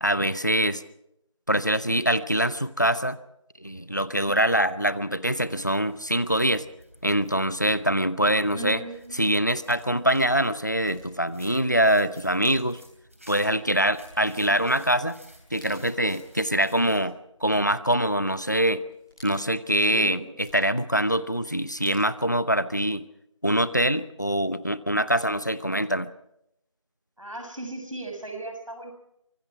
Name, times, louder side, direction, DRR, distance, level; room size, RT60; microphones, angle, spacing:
voice 1, 0.0-0.8 1.5-3.2 3.6-6.6 7.0-8.8 9.1-12.8 13.3-15.2 15.5-17.1 17.4-18.8 19.2-23.0 23.4-26.1, equal, 35° left, 16 dB, 0.8 m, -24 dB
sound 1, 5.5-17.0, right 1 dB, 25° right, 3.1 m, -53 dB
voice 2, 8.5-9.2 19.9-20.3 27.2-28.9, right 2 dB, 75° right, 4 dB, 6.9 m, -36 dB
sound 2, 10.1-22.9, equal, 10° left, 7.9 m, -58 dB
24.5 x 24.5 x 4.7 m, 0.79 s
figure-of-eight pair, 180°, 17 cm